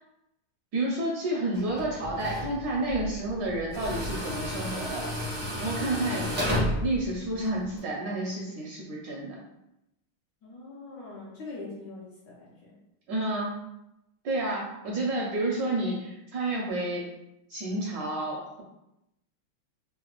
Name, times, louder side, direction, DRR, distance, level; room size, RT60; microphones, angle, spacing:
voice 1, 0.7-5.1 5.6-6.3 6.8-9.4 13.1-13.5 14.2-17.1 17.5-18.6, right 2 dB, 75° right, -3 dB, 1.1 m, -30 dB
Tools, 1.5-7.8, left 1 dB, 45° right, 0.4 m, -33 dB
voice 2, 10.4-12.8, left 3 dB, 70° left, -5 dB, 1.1 m, -43 dB
3.7 x 2.1 x 2.9 m, 0.87 s
omnidirectional pair, 2.4 m